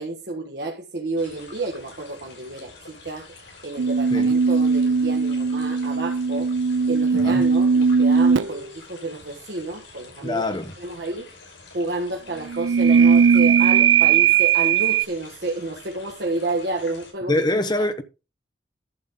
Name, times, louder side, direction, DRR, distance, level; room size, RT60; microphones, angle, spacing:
voice 1, 0.0-3.3 3.6-6.5 6.9-10.4 10.8-11.3 11.7-17.4 17.8-17.9, right 2 dB, 65° right, 1.4 m, -30 dB
sound 1, 1.2-17.1, left 3 dB, 85° left, 5.6 m, -47 dB
sound 2, 3.8-8.6 12.5-15.0, right 6 dB, 90° right, 0.5 m, -18 dB
voice 2, 7.1-7.5 10.2-10.7 17.3-18.0, left 1 dB, 25° left, 1.0 m, -24 dB
11.5 x 7.4 x 3.7 m
head